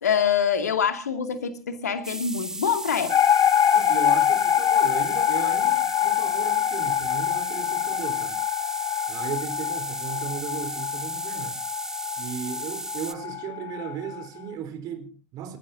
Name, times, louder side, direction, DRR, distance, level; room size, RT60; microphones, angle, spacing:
voice 1, 0.0-3.4, left 7 dB, 80° left, 2.5 m, -25 dB
sound 1, 2.0-13.1, right 2 dB, 5° right, 1.0 m, -35 dB
sound 2, 3.1-14.3, left 10 dB, 40° left, 1.5 m, -25 dB
voice 2, 3.7-8.4 9.1-11.6 12.1-15.6, right 8 dB, 50° right, 3.9 m, -36 dB
29.0 x 15.0 x 2.7 m
hypercardioid pair, 80°, 9 cm